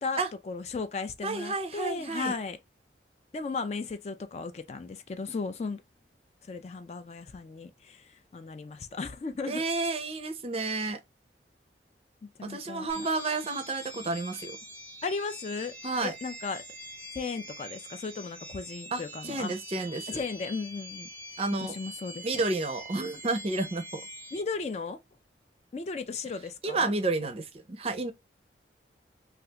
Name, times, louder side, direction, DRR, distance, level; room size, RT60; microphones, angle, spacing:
voice 1, 0.0-2.6 3.3-5.8 6.4-9.6 12.2-13.1 15.0-15.7 16.0-16.6 17.1-19.5 20.1-21.1 21.6-22.3 24.3-25.0 25.7-26.9, left 4 dB, 35° left, 0.3 m, -36 dB
voice 2, 1.2-2.4 9.5-11.0 12.4-14.6 15.8-16.1 18.9-20.2 21.4-21.8 22.2-24.0 26.6-28.1, right 3 dB, 35° right, 0.5 m, -31 dB
sound 1, 12.9-24.4, right 1 dB, 10° left, 0.8 m, -44 dB
3.3 x 2.4 x 2.7 m
head